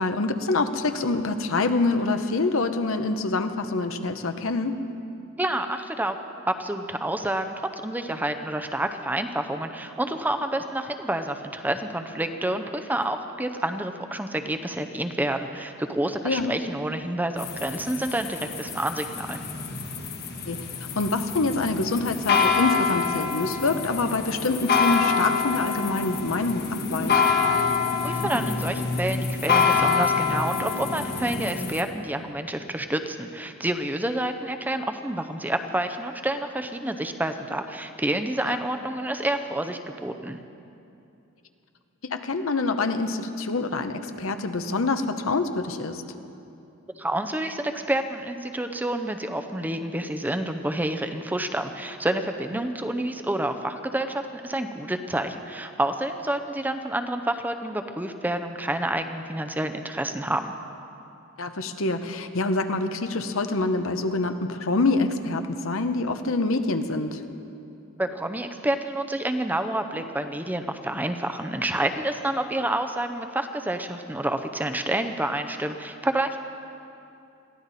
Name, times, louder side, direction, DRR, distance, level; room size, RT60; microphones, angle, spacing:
voice 1, 0.0-4.7 16.2-16.6 20.5-20.7 20.9-27.2 38.5-38.6 42.0-46.0 61.4-67.2, left 3 dB, 80° left, 8 dB, 0.9 m, -26 dB
voice 2, 5.4-6.2 6.5-7.5 7.8-19.4 28.0-40.4 47.0-60.5 68.0-76.4, right 1 dB, 10° right, 7 dB, 0.6 m, -28 dB
sound 1, 17.4-31.8, left 5 dB, 50° left, 1.4 m, -26 dB
22.0 x 15.0 x 4.1 m, 2.7 s
head